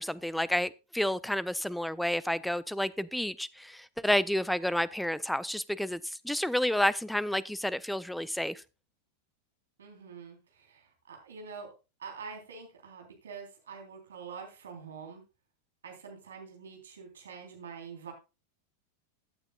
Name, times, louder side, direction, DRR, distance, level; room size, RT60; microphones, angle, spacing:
voice 1, 0.0-8.6, left 1 dB, ahead, 0.5 m, -30 dB
voice 2, 9.8-11.7 12.0-15.2 15.8-18.1, right 5 dB, 65° right, 3.6 m, -46 dB
16.0 x 8.9 x 2.3 m
figure-of-eight pair, 90°, 0 cm